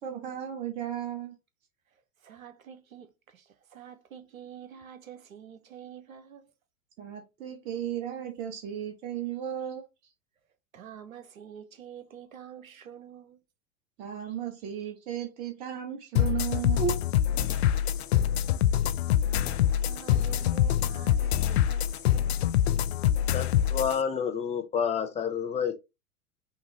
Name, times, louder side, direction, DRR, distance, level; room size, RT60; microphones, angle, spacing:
voice 1, 0.0-1.3 7.0-9.8 14.0-17.0, right 10 dB, 15° right, 0.4 m, -34 dB
voice 2, 1.9-6.4 10.7-13.4 17.9-18.2 18.9-22.4, right 9 dB, 70° right, 0.9 m, -48 dB
sound 1, 16.2-24.0, left 11 dB, 50° left, 0.4 m, -25 dB
voice 3, 23.3-25.7, left 7 dB, 15° left, 0.8 m, -29 dB
5.7 x 2.7 x 2.9 m
figure-of-eight pair, 95°, 43 cm